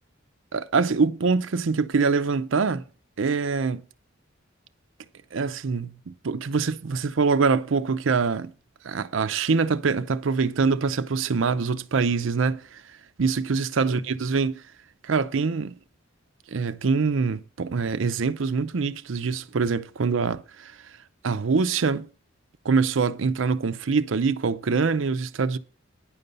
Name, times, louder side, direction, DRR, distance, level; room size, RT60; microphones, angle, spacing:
voice 1, 0.5-2.8 3.2-3.8 5.3-8.5 8.8-14.6 15.0-15.7 16.5-20.8 21.2-22.1 22.6-25.6, right 4 dB, 70° right, 0.6 m, -24 dB
10.0 x 5.3 x 6.7 m
head